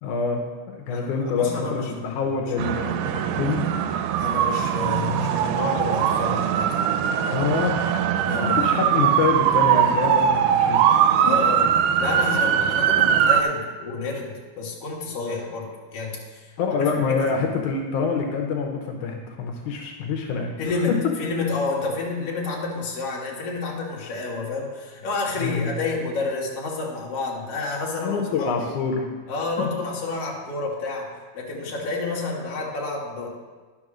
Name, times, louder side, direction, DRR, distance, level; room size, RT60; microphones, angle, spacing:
voice 1, 0.0-3.6 7.3-7.8 8.4-10.9 16.6-20.5 25.4-25.7 28.0-29.1 29.6-29.7, left 5 dB, 85° left, 2 dB, 2.4 m, -26 dB
voice 2, 0.9-2.5 4.2-6.8 8.2-8.6 11.2-11.7 12.0-17.2 20.6-28.7 29.3-33.3, left 3 dB, 55° left, -3 dB, 2.6 m, -30 dB
sound 1, 2.6-13.4, right 9 dB, 90° right, 2.1 m, -21 dB
11.0 x 5.3 x 6.1 m, 1.4 s
omnidirectional pair, 3.5 m